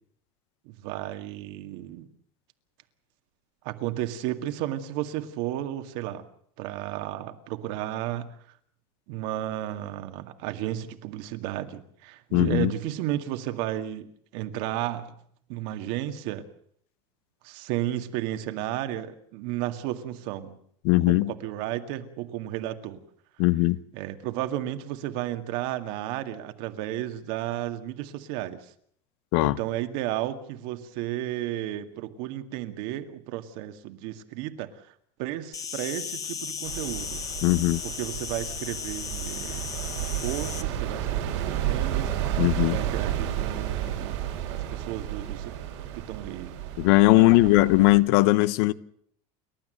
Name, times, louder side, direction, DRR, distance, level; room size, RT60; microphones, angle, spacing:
voice 1, 0.7-2.1 3.6-6.2 6.6-8.3 9.1-14.1 14.3-15.1 15.5-16.4 17.4-20.6 21.1-23.0 23.9-28.7 29.4-34.7 35.2-37.2 37.8-39.8 40.0-44.2 44.5-45.5 46.1-46.5 47.1-47.5 47.8-47.9, right 13 dB, 65° right, 2.0 m, -33 dB
voice 2, 12.3-12.7 20.8-21.3 23.4-23.8 29.3-29.6 37.4-37.8 42.4-42.8 46.8-48.7, left 20 dB, 70° left, 0.9 m, -19 dB
Insect, 35.5-40.6, left 6 dB, 25° left, 1.4 m, -35 dB
sound 1, 36.6-48.0, right 11 dB, 90° right, 6.2 m, -32 dB
29.0 x 12.5 x 7.9 m
cardioid pair, 160°, 15 cm